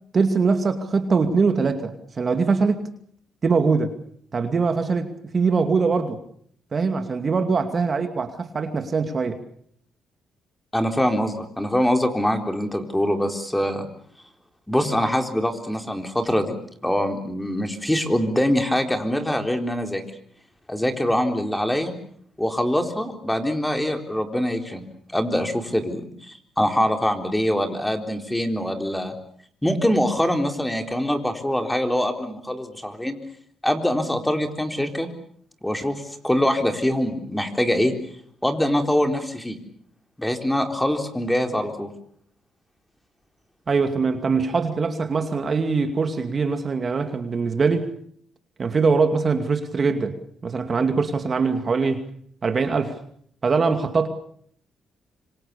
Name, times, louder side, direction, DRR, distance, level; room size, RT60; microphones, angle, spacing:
voice 1, 0.1-2.9 3.4-3.9 4.3-6.2 6.7-9.4 43.7-47.9 48.6-50.2 50.4-52.1 52.4-52.9 53.4-54.1, right 4 dB, 40° right, 7 dB, 2.4 m, -22 dB
voice 2, 10.7-13.9 14.7-16.5 16.8-20.0 20.7-21.9 22.4-24.8 25.1-29.1 29.6-33.2 33.6-35.1 35.6-37.9 38.4-39.6 40.2-41.9, left 1 dB, 5° left, 5 dB, 3.9 m, -24 dB
26.0 x 25.5 x 7.0 m, 0.63 s
cardioid pair, 90°, 0 cm